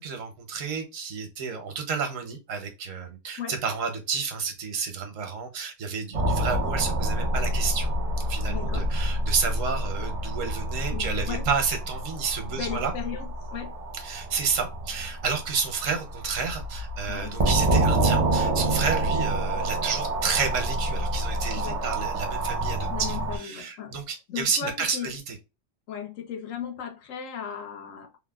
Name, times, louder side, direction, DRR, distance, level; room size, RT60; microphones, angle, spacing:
voice 1, 0.0-7.9 8.3-12.9 14.0-25.4, right 5 dB, 90° right, 1.2 m, -30 dB
sound 1, 6.1-23.4, right 1 dB, 45° right, 0.5 m, -27 dB
voice 2, 8.5-8.9 10.9-11.5 12.5-13.8 17.1-17.4 21.6-21.9 22.9-24.0 24.3-25.1 25.9-28.2, left 8 dB, 85° left, 1.1 m, -36 dB
3.3 x 2.1 x 2.2 m
omnidirectional pair, 1.3 m